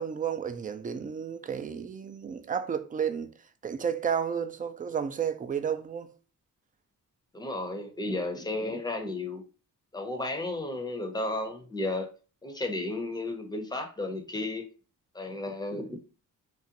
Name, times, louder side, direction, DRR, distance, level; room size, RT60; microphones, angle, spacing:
voice 1, 0.0-3.3 3.6-6.1, right 7 dB, 25° right, 0.3 m, -32 dB
voice 2, 7.3-9.4 9.9-12.1 12.4-14.6 15.1-16.0, left 2 dB, 10° left, 0.6 m, -33 dB
2.5 x 2.1 x 2.8 m
cardioid pair, 55°, 37 cm